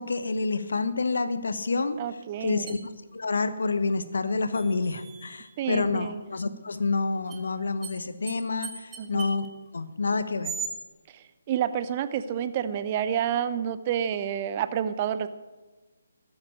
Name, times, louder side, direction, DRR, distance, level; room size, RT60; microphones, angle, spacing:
voice 1, 0.0-2.0 2.4-2.8 3.1-9.5 9.7-10.5, left 3 dB, 60° left, 11 dB, 1.1 m, -28 dB
voice 2, 2.0-2.9 5.6-6.2 9.0-9.3 11.5-15.3, right 9 dB, 30° right, 13 dB, 0.8 m, -29 dB
sound 1, 2.7-2.8 4.5-5.6 7.3-7.4 7.8-7.9 8.3-8.4 8.6-9.5 10.4-10.7, right 7 dB, 10° right, 1.3 m, -38 dB
13.5 x 9.4 x 8.3 m, 1.2 s
figure-of-eight pair, 145°, 0 cm